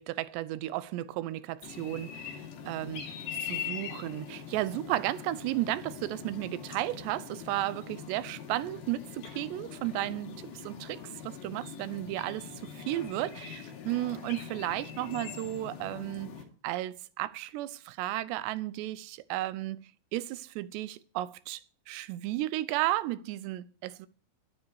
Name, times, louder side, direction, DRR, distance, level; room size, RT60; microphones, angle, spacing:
voice 1, 0.0-16.3 16.6-19.8 20.1-21.6 21.9-24.1, right 15 dB, 90° right, 2.9 m, -34 dB
sound 1, 1.6-16.4, left 8 dB, 80° left, 4.4 m, -43 dB
12.0 x 12.0 x 4.8 m
omnidirectional pair, 4.8 m